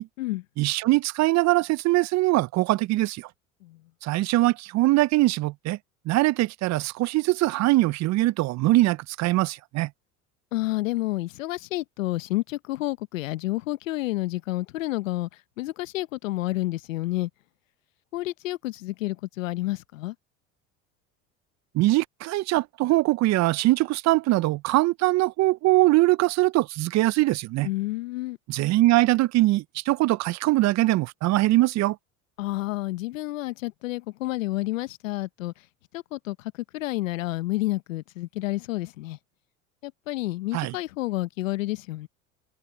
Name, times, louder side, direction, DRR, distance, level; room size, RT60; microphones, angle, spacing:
voice 1, 0.6-3.3 4.0-5.8 6.1-9.9 21.7-27.7 28.5-32.0 40.5-40.7, right 18 dB, 45° right, 0.6 m, -22 dB
voice 2, 10.5-15.3 15.6-17.3 18.1-20.1 27.6-28.4 32.4-35.5 35.9-36.4 36.7-39.2 39.8-42.1, left 18 dB, 85° left, 0.9 m, -30 dB
hypercardioid pair, 80°, 39 cm